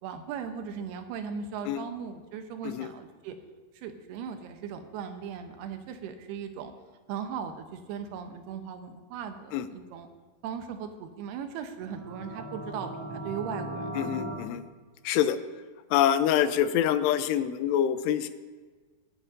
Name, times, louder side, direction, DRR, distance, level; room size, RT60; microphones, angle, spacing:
voice 1, 0.0-3.4 3.8-6.7 7.1-10.1 10.4-14.1, right 7 dB, 80° right, 7 dB, 2.7 m, -38 dB
sound 1, 11.8-14.3, right 1 dB, 50° right, 3.1 m, -37 dB
voice 2, 14.0-14.6 15.0-15.4 15.9-18.3, left 10 dB, 85° left, 11 dB, 2.7 m, -25 dB
22.0 x 9.0 x 2.6 m, 1.4 s
omnidirectional pair, 4.7 m